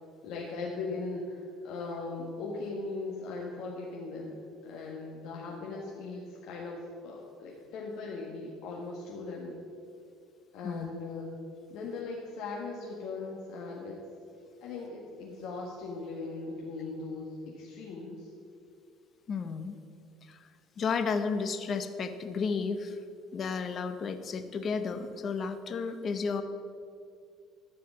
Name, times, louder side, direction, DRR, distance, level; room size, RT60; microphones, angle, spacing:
voice 1, 0.2-9.5 10.5-11.3 11.7-14.0 14.6-18.3, left 3 dB, 75° left, -3 dB, 1.6 m, -39 dB
voice 2, 19.3-19.8 20.3-20.4 20.8-23.0 23.3-26.4, left 5 dB, 40° left, 9 dB, 0.9 m, -32 dB
13.5 x 5.0 x 7.4 m, 2.4 s
cardioid pair, 110°, 0 cm